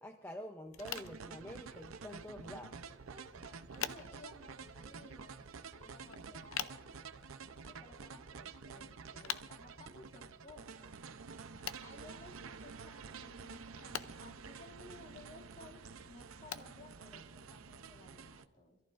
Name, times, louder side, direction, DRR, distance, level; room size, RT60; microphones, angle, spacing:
voice 1, 0.0-2.8, equal, 10° left, 4 dB, 0.6 m, -47 dB
sound 1, 0.7-17.9, left 9 dB, 90° left, 0.6 m, -49 dB
sound 2, 0.8-18.5, right 5 dB, 80° right, 0.7 m, -50 dB
voice 2, 3.1-7.1 7.6-10.9 11.8-18.8, left 2 dB, 35° left, -1 dB, 2.4 m, -57 dB
26.0 x 14.0 x 2.5 m, 1.2 s
head